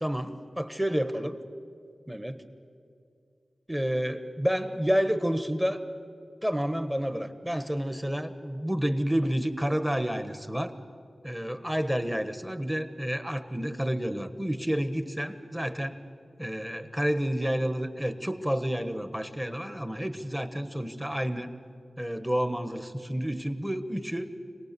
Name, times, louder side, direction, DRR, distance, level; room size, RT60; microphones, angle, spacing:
voice 1, 0.0-1.4 2.1-2.4 3.7-5.8 6.4-10.7 11.2-16.0 16.4-21.5 22.0-24.3, equal, 5° right, 10 dB, 1.2 m, -30 dB
25.5 x 18.5 x 6.9 m, 2.5 s
wide cardioid pair, 95°, 0 cm